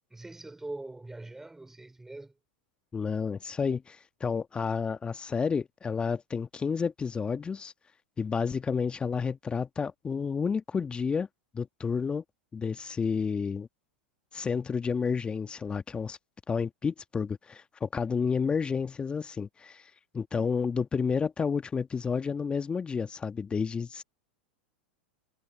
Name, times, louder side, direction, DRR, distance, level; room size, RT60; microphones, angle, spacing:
voice 1, 0.1-2.3, right 2 dB, 5° right, 3.7 m, -42 dB
voice 2, 2.9-7.7 8.2-11.3 11.5-12.2 12.5-13.7 14.3-16.2 16.5-24.0, left 5 dB, 20° left, 1.4 m, -30 dB
hypercardioid pair, 95°, 5 cm